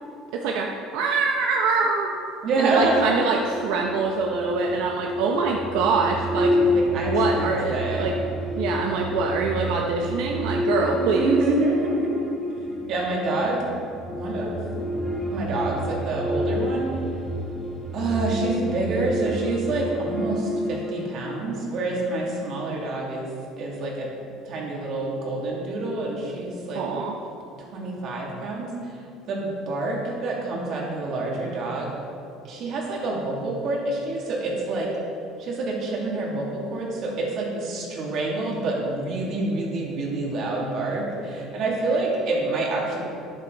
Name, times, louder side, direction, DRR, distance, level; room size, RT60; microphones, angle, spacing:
voice 1, 0.3-2.1 2.6-6.5 7.0-8.1 8.5-11.4 26.7-27.1, right 4 dB, 80° right, 0 dB, 0.9 m, -24 dB
voice 2, 2.4-3.1 6.6-8.1 11.0-12.2 12.9-13.6 14.2-14.5 15.3-16.9 17.9-23.3 23.6-24.1 24.4-26.8 27.7-28.9 29.3-31.9 32.4-34.9 35.4-43.0, right 2 dB, 45° right, -3 dB, 2.7 m, -27 dB
sound 1, 2.8-21.7, left 1 dB, 5° right, 1.8 m, -29 dB
12.5 x 11.0 x 4.0 m, 2.6 s
cardioid pair, 160°, 0 cm